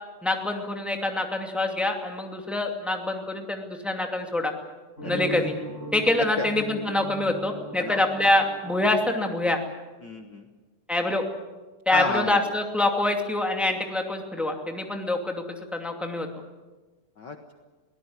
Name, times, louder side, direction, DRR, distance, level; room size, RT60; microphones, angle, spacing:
voice 1, 0.2-4.5 5.0-5.5 5.9-9.6 10.9-11.2 11.9-15.4 15.7-16.3, left 2 dB, ahead, 3 dB, 1.8 m, -25 dB
voice 2, 5.0-5.4 6.4-6.5 7.8-8.0 10.0-10.5 11.9-12.6 17.2-17.5, left 3 dB, 70° left, 5 dB, 1.0 m, -32 dB
sound 1, 5.0-9.7, right 1 dB, 20° left, 4.5 m, -39 dB
23.0 x 18.5 x 9.6 m, 1.3 s
omnidirectional pair, 3.9 m